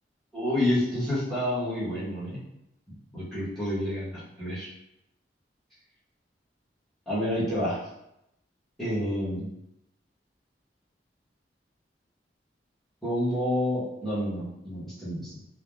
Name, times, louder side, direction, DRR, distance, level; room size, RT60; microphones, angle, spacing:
voice 1, 0.3-2.4 3.1-4.7 7.1-7.8 8.8-9.5 13.0-15.3, left 1 dB, ahead, -12 dB, 1.0 m, -29 dB
3.4 x 2.1 x 2.3 m, 0.83 s
head